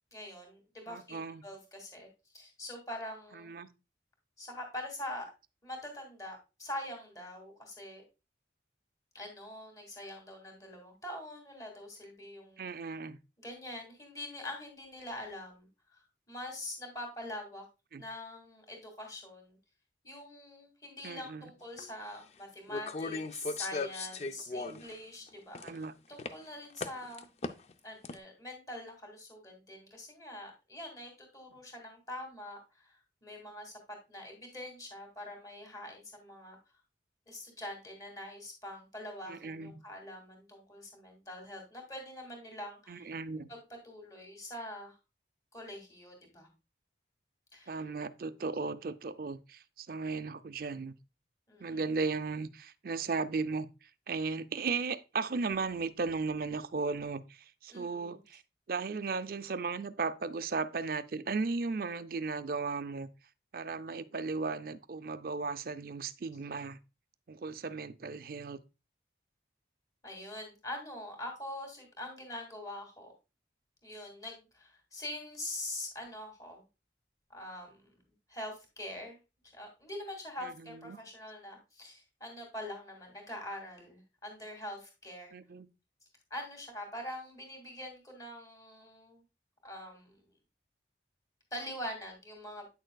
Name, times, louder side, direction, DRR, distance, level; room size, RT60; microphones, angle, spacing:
voice 1, 0.1-2.1 2.3-3.5 4.4-5.3 5.6-8.0 9.1-12.7 13.4-17.6 18.0-19.6 20.0-25.8 26.1-27.3 27.8-33.8 34.1-36.6 37.3-43.1 43.5-45.0 45.5-46.5 47.5-47.8 51.5-51.8 57.7-58.2 70.0-73.1 73.8-76.6 77.3-77.9 78.3-79.2 79.5-85.3 86.3-89.2 89.6-90.2 91.5-92.6, left 1 dB, 20° left, 2.1 m, -44 dB
voice 2, 0.9-1.4 3.3-3.7 12.6-13.2 17.9-18.0 21.0-21.5 24.7-24.8 25.6-25.9 39.3-39.8 42.9-43.5 47.7-50.9 51.6-58.4 58.7-63.1 63.5-66.8 67.3-68.6 80.4-81.0 85.3-85.7, right 4 dB, 50° right, 0.4 m, -36 dB
sound 1, 21.8-21.9 22.7-24.9 25.3-25.8 26.2-26.3 26.8-27.7 28.0-28.1, left 3 dB, 35° left, 0.4 m, -37 dB
8.9 x 6.5 x 2.3 m
head